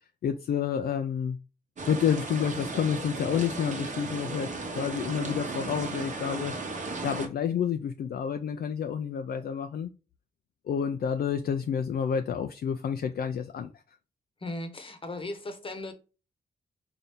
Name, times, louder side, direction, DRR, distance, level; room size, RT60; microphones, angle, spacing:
voice 1, 0.2-1.4 1.9-6.6 7.0-9.9 10.7-13.7, left 8 dB, 60° left, 0.4 m, -29 dB
sound 1, 1.8-7.3, right 3 dB, 45° right, 0.9 m, -35 dB
voice 2, 14.4-15.9, left 2 dB, 30° left, 0.9 m, -37 dB
4.3 x 2.6 x 3.4 m
cardioid pair, 105°, 18 cm